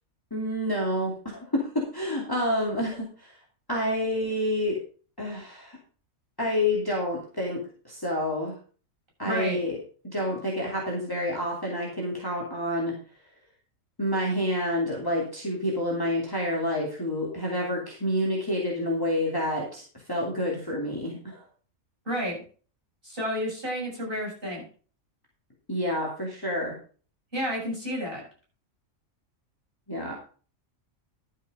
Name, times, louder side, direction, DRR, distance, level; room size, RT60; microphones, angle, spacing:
voice 1, 0.3-3.4 3.7-4.8 5.2-5.8 6.4-8.6 9.2-9.8 10.0-12.9 14.0-19.8 20.1-21.4 25.7-26.8 29.9-30.1, left 1 dB, 15° left, -3 dB, 2.7 m, -28 dB
voice 2, 9.2-9.6 22.1-22.4 23.0-24.6 27.3-28.2, equal, 40° right, -4 dB, 7.2 m, -30 dB
12.0 x 7.4 x 5.1 m, 0.39 s
omnidirectional pair, 1.4 m